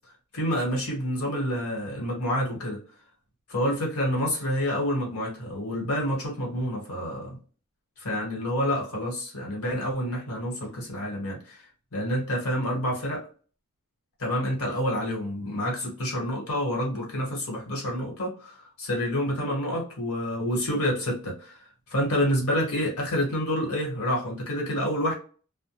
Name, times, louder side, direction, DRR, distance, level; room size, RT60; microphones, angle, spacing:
voice 1, 0.3-2.8 3.5-7.4 8.0-11.6 11.9-13.2 14.2-21.6 21.9-25.1, equal, 75° left, -1 dB, 1.2 m, -28 dB
2.2 x 2.1 x 2.9 m, 0.39 s
head